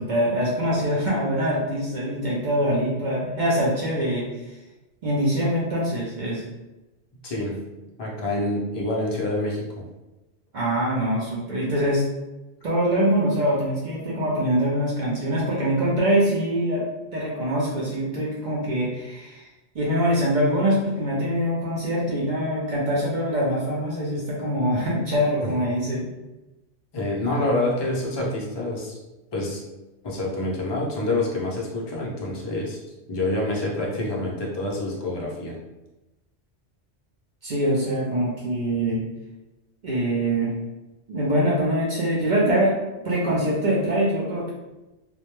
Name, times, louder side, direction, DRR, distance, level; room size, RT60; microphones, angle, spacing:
voice 1, 0.0-4.3 5.0-6.4 10.5-12.0 12.6-16.8 17.1-19.5 19.7-26.1 37.4-39.0 39.8-40.5 41.1-42.7 43.0-44.5, equal, 55° right, -5 dB, 0.6 m, -24 dB
voice 2, 7.2-7.6 8.0-9.7 25.4-25.5 26.9-29.0 29.3-29.6 30.0-32.8 33.1-35.6, left 1 dB, 40° left, -3 dB, 0.4 m, -27 dB
2.2 x 2.1 x 2.9 m, 1.0 s
omnidirectional pair, 1.2 m